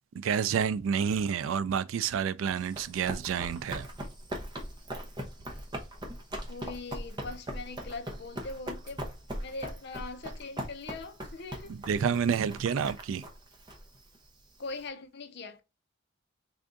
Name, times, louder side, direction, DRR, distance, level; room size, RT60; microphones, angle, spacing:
voice 1, 0.1-3.9 11.7-13.3, right 7 dB, 80° right, 0.3 m, -29 dB
Run, 2.6-14.8, equal, 20° right, 0.8 m, -40 dB
voice 2, 6.5-9.1 9.4-11.8 14.6-15.6, left 3 dB, 55° left, 0.5 m, -41 dB
3.5 x 2.6 x 3.6 m
head